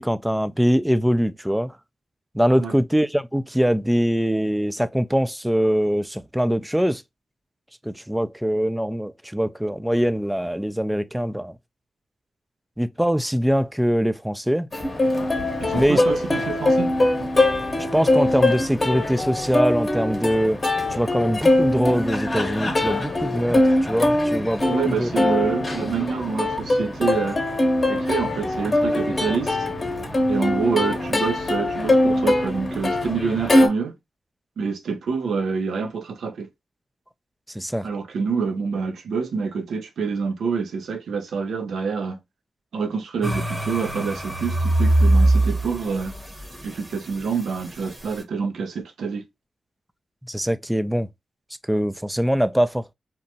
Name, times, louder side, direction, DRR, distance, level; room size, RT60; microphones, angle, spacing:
voice 1, 0.0-1.7 2.3-7.0 7.8-11.5 12.8-14.7 15.7-16.0 17.9-20.6 20.9-25.1 37.5-37.9 50.3-51.1 51.7-52.9, equal, 5° right, 0.3 m, -23 dB
Plucked string instrument, 14.7-33.7, left 1 dB, 40° left, 0.8 m, -22 dB
voice 2, 15.6-16.9 17.2-17.3 24.7-27.4 27.9-29.7 30.3-33.9 34.6-36.5 37.8-42.2 42.7-46.1 46.6-49.2, right 5 dB, 85° right, 0.5 m, -27 dB
sound 1, 43.2-48.1, right 1 dB, 25° right, 0.8 m, -22 dB
2.8 x 2.1 x 2.6 m
cardioid pair, 50°, 0 cm